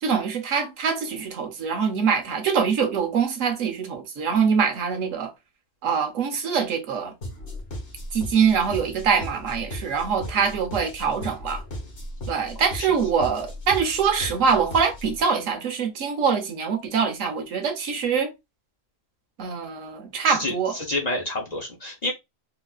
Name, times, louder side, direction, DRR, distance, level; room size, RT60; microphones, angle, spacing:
voice 1, 0.0-5.3 5.8-7.1 8.1-11.6 12.3-18.3 19.4-20.8, right 6 dB, 75° right, 1.2 m, -24 dB
sound 1, 7.2-15.2, left 1 dB, 55° left, 1.3 m, -37 dB
voice 2, 20.2-22.1, left 1 dB, 35° left, 0.8 m, -29 dB
3.9 x 2.4 x 2.3 m
omnidirectional pair, 1.4 m